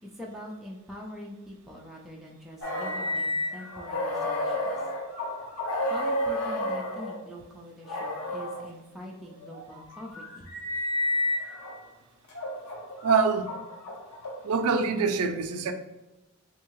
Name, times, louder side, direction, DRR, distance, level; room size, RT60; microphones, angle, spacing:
voice 1, 0.0-4.8 5.9-10.5, left 1 dB, ahead, 0.4 m, -43 dB
sound 1, 2.6-7.2 7.8-8.6 9.4-11.7 12.3-14.7, left 1 dB, 85° left, 0.8 m, -31 dB
voice 2, 13.0-13.5 14.4-15.7, right 5 dB, 90° right, 0.4 m, -24 dB
3.4 x 2.7 x 3.0 m
head